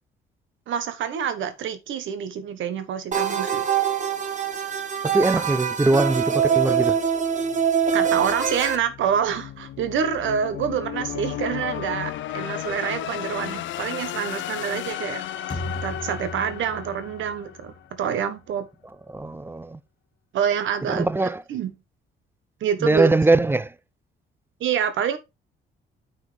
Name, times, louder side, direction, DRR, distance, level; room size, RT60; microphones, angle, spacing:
voice 1, 0.7-3.7 7.9-15.2 15.5-18.7 20.3-21.7 22.6-23.1 24.6-25.2, right 8 dB, 75° right, 1.3 m, -27 dB
sound 1, 3.1-8.8, right 7 dB, 40° right, 1.1 m, -24 dB
voice 2, 5.0-7.0 19.1-19.8 20.9-21.4 22.8-23.7, right 2 dB, 10° right, 0.4 m, -21 dB
sound 2, 7.0-18.0, left 12 dB, 75° left, 0.7 m, -34 dB
sound 3, 15.5-18.6, left 1 dB, 25° left, 1.9 m, -37 dB
9.4 x 4.3 x 3.4 m
cardioid pair, 90°, 20 cm